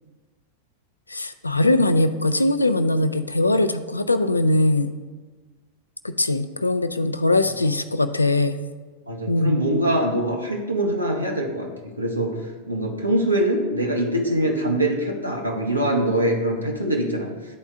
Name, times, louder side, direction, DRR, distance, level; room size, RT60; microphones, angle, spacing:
voice 1, 1.1-4.9 6.0-8.6 9.3-9.6, left 2 dB, 80° left, 11 dB, 0.4 m, -21 dB
voice 2, 9.1-11.7 12.0-12.4 12.7-17.3, right 1 dB, 85° right, -1 dB, 0.8 m, -23 dB
11.5 x 4.3 x 2.4 m, 1.3 s
figure-of-eight pair, 90°, 0 cm